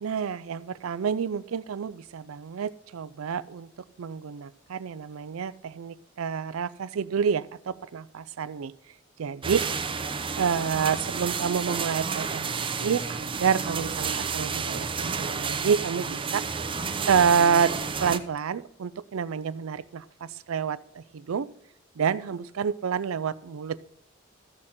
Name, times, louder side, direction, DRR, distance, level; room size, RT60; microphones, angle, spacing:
voice 1, 0.0-3.7 4.0-8.7 9.2-9.6 10.4-16.4 17.1-17.7 18.0-21.5 22.0-23.8, right 7 dB, 75° right, 15 dB, 0.4 m, -28 dB
sound 1, 9.4-18.2, right 5 dB, 25° right, 0.7 m, -31 dB
13.5 x 6.5 x 5.7 m, 0.73 s
head